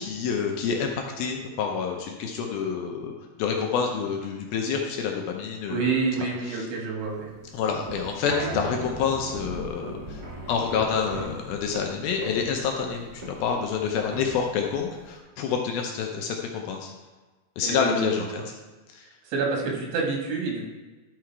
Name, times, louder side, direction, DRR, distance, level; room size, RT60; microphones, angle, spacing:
voice 1, 0.0-3.1 3.4-5.9 6.2-6.7 7.5-10.2 10.5-16.9 17.6-18.5 18.9-19.1, left 6 dB, 75° left, 2 dB, 2.3 m, -28 dB
voice 2, 5.7-7.3 17.6-18.4 19.3-20.7, right 4 dB, 90° right, -1 dB, 3.8 m, -28 dB
sound 1, 7.0-15.2, right 1 dB, 45° right, 1.3 m, -38 dB
12.0 x 4.8 x 4.6 m, 1.2 s
omnidirectional pair, 4.9 m